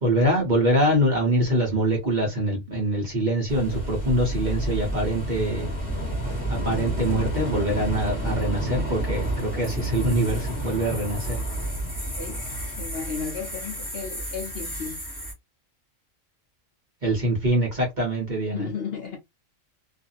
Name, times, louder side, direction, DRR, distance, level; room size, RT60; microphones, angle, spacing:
voice 1, 0.0-5.7 6.5-11.4 17.0-18.7, right 1 dB, 40° right, 0.9 m, -24 dB
sound 1, 3.5-15.3, right 1 dB, 15° left, 1.4 m, -30 dB
voice 2, 12.2-12.5 12.8-15.0 18.5-19.2, left 6 dB, 55° left, 0.9 m, -34 dB
2.6 x 2.5 x 2.5 m
omnidirectional pair, 1.3 m